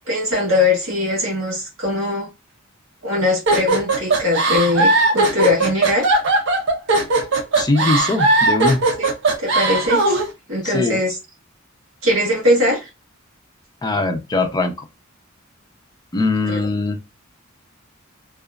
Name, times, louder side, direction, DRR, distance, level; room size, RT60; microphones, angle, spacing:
voice 1, 0.1-2.3 3.0-6.1 9.0-9.1 9.4-10.2 10.5-11.2 12.0-12.9 16.4-16.6, left 2 dB, 75° right, 1.5 m, -20 dB
sound 1, 3.5-10.3, right 2 dB, 60° right, 0.7 m, -18 dB
voice 2, 7.6-8.8 10.6-11.0 13.8-14.9 16.1-17.0, left 2 dB, 20° left, 0.5 m, -21 dB
2.9 x 2.3 x 2.3 m
head